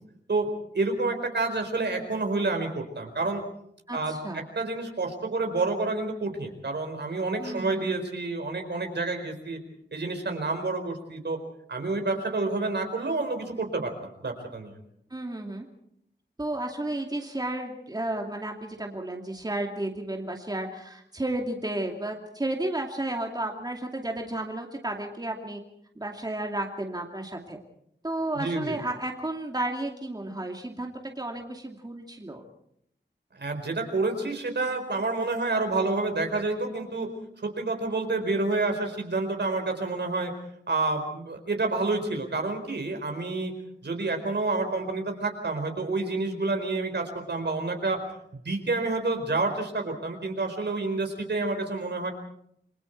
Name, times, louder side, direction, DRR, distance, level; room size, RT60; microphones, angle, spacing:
voice 1, 0.3-3.4 3.9-9.6 9.9-11.4 11.7-14.7 28.4-28.8 33.3-37.1 37.4-40.3 40.7-43.5 43.8-48.0 48.3-52.1, right 3 dB, 70° right, 4 dB, 4.5 m, -29 dB
voice 2, 3.9-4.4 7.4-8.1 15.1-15.7 16.4-25.6 25.9-27.6 28.0-32.4, right 1 dB, 20° right, 1 dB, 2.6 m, -32 dB
28.5 x 23.0 x 4.6 m, 0.70 s
wide cardioid pair, 95°, 18 cm